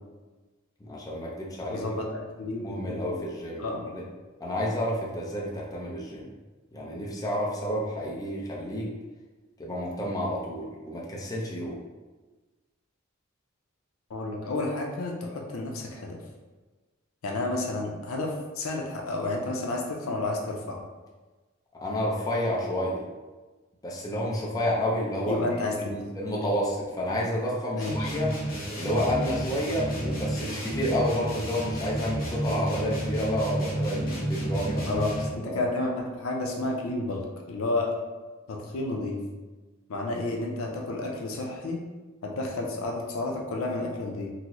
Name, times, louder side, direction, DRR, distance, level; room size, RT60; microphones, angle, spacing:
voice 1, 0.8-1.8 2.6-4.0 4.4-6.3 6.7-8.9 9.6-11.8 21.7-23.0 23.8-25.4 25.7-28.3 28.7-34.9 35.4-35.6, equal, 20° left, -4 dB, 0.5 m, -30 dB
voice 2, 1.7-2.0 2.4-3.2 3.6-3.9 14.1-16.2 17.2-20.8 25.2-26.0 27.7-28.1 34.9-38.0 38.5-39.2 39.9-41.9 42.2-44.3, left 2 dB, 85° left, 0 dB, 0.6 m, -31 dB
sound 1, 27.8-35.5, right 1 dB, 45° left, 1.0 m, -31 dB
3.9 x 2.0 x 2.9 m, 1.3 s
head